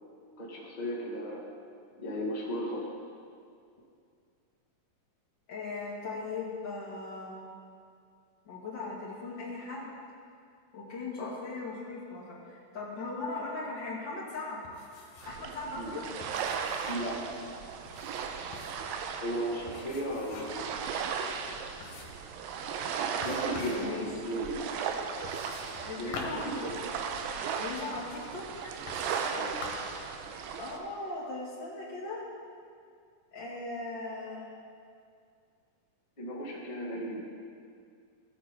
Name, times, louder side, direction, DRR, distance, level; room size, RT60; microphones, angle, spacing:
voice 1, 0.4-1.4 2.0-2.9 11.2-11.4 15.7-15.9 16.9-17.2 19.2-20.8 23.2-24.5 26.0-26.7 29.3-29.6 36.2-37.2, equal, 60° left, -5 dB, 0.4 m, -35 dB
voice 2, 5.5-7.4 8.5-9.9 10.7-14.6 15.2-16.0 22.1-22.2 23.5-24.1 25.8-26.5 27.6-28.7 30.5-32.2 33.3-34.4, left 3 dB, 40° left, -5 dB, 2.1 m, -39 dB
sound 1, 14.6-15.4 15.7-15.8 16.2-17.2 17.9-18.9 19.7-20.7 21.1-21.2 21.8-22.3 23.2-23.9 25.2-27.2 28.0-28.1 28.9-29.4 29.6-30.0, left 3 dB, 75° left, 3.1 m, -45 dB
sound 2, 15.2-30.8, right 6 dB, 90° right, 2.5 m, -37 dB
16.5 x 7.7 x 4.1 m, 2.3 s
omnidirectional pair, 4.2 m